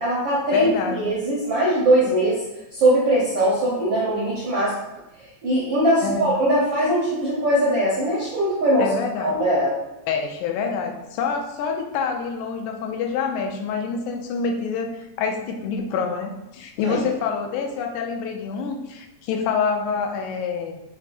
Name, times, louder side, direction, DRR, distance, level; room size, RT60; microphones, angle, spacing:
voice 1, 0.0-0.7 1.0-2.4 2.7-4.7 5.4-8.9 9.2-9.7 16.8-17.0, right 1 dB, 70° right, -7 dB, 1.1 m, -21 dB
voice 2, 0.5-1.1 6.0-6.3 8.8-9.4 10.1-20.8, left 5 dB, 85° left, 4 dB, 2.0 m, -26 dB
6.6 x 2.8 x 2.5 m, 0.94 s
omnidirectional pair, 3.4 m